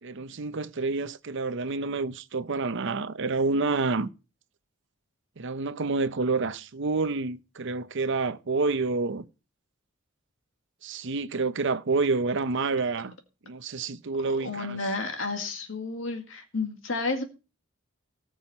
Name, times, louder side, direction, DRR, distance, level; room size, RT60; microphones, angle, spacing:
voice 1, 0.0-4.1 5.4-9.3 10.8-13.1 13.5-14.8, right 3 dB, 65° right, 0.7 m, -28 dB
voice 2, 14.3-17.2, left 3 dB, 70° left, 2.1 m, -31 dB
18.0 x 6.3 x 4.3 m
head